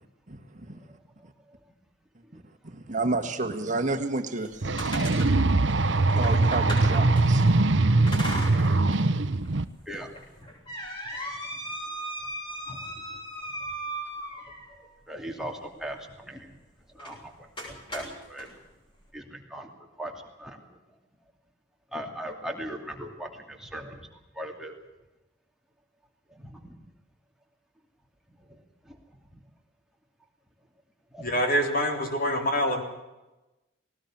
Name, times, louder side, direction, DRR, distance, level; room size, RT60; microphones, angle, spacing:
voice 1, 0.3-0.8 2.3-5.0 6.1-7.5, right 3 dB, 40° right, 5 dB, 1.7 m, -31 dB
sound 1, 4.4-7.5 8.1-9.1 9.4-9.5 10.2-14.8 17.0-17.2 17.6-18.5, right 1 dB, 25° left, 7.6 m, -37 dB
sound 2, 4.6-9.6, right 2 dB, 65° right, 0.9 m, -22 dB
voice 2, 9.9-10.5 12.7-12.9 13.6-13.7 14.7-16.6 17.0-18.5 19.1-19.7 20.0-20.6 21.9-24.1 24.3-24.8 26.3-26.8 28.5-28.6 28.9-29.0 29.3-29.4 31.1-31.3, equal, ahead, 1 dB, 2.7 m, -40 dB
voice 3, 31.2-32.8, equal, 45° left, 4 dB, 3.6 m, -25 dB
19.5 x 19.0 x 7.4 m, 1.0 s
head